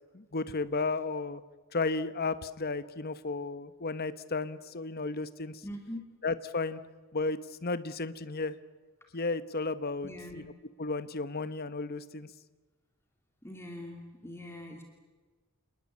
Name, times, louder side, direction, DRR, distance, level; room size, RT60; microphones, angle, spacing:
voice 1, 0.1-1.4 1.7-5.6 6.2-6.8 7.1-8.5 9.1-10.4 10.8-12.3, left 3 dB, 45° left, 13 dB, 1.1 m, -33 dB
voice 2, 5.6-6.0 10.0-10.5 13.4-14.8, left 1 dB, 10° left, 2 dB, 2.8 m, -42 dB
28.5 x 20.0 x 8.6 m, 1.3 s
head